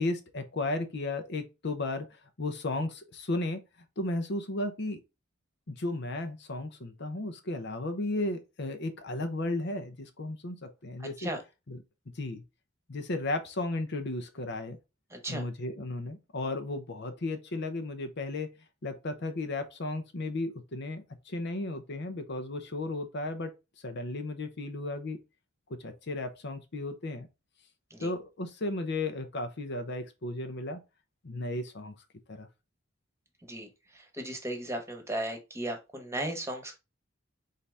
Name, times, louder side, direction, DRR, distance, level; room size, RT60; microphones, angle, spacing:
voice 1, 0.0-2.1 2.4-3.6 4.0-5.0 5.7-11.3 11.7-11.8 12.1-12.4 12.9-14.8 15.3-18.5 18.8-23.5 23.8-25.2 25.8-27.3 28.0-30.8 31.2-31.9 32.3-32.5, left 2 dB, 55° left, 0.8 m, -34 dB
voice 2, 15.1-15.4 27.9-28.1 33.4-33.7 34.2-36.7, right 1 dB, 15° right, 1.2 m, -35 dB
4.2 x 3.8 x 3.4 m
head